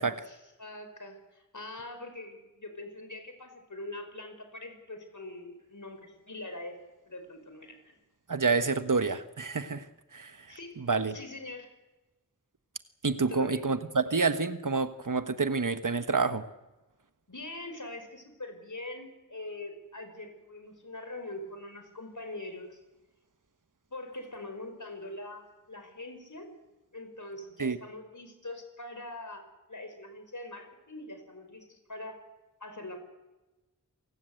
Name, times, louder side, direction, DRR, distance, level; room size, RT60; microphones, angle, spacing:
voice 1, 0.0-6.8 7.1-8.0 10.5-11.7 13.1-13.7 17.3-22.8 23.9-26.5 26.9-32.2 32.6-33.0, left 2 dB, 65° left, 6 dB, 5.3 m, -43 dB
voice 2, 8.3-9.9 10.1-10.5 10.8-11.2 13.0-16.4 27.6-27.8, right 4 dB, 70° right, 11 dB, 1.3 m, -28 dB
27.0 x 18.5 x 7.9 m, 1.1 s
wide cardioid pair, 40°, 33 cm